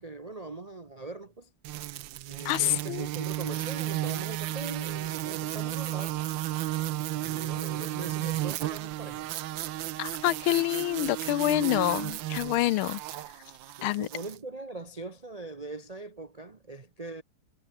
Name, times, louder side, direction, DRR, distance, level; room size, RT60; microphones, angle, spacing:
voice 1, 0.0-1.5 2.3-6.2 7.2-9.3 13.6-17.2, right 3 dB, 45° right, 0.5 m, -41 dB
sound 1, 1.6-14.4, right 15 dB, 70° right, 1.3 m, -33 dB
voice 2, 2.4-3.1 10.0-13.0 13.8-14.1, left 17 dB, 80° left, 1.3 m, -27 dB
omnidirectional pair, 2.4 m